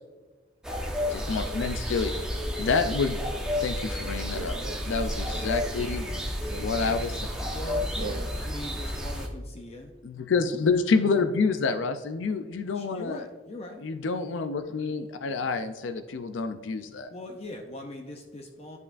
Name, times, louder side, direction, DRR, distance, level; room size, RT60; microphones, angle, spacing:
sound 1, 0.6-9.3, left 1 dB, 5° right, 0.9 m, -31 dB
voice 1, 1.1-2.2 2.6-3.2 3.6-4.6 4.9-6.0 6.6-7.2 10.0-13.2 13.8-17.1, left 4 dB, 85° left, 9 dB, 0.5 m, -28 dB
voice 2, 4.3-7.7 8.0-8.3, right 4 dB, 55° right, 11 dB, 0.4 m, -42 dB
voice 3, 7.5-10.0 10.4-10.6 12.7-13.8 17.0-18.8, left 1 dB, 35° left, 3 dB, 0.6 m, -41 dB
10.5 x 5.4 x 2.5 m, 1.3 s
head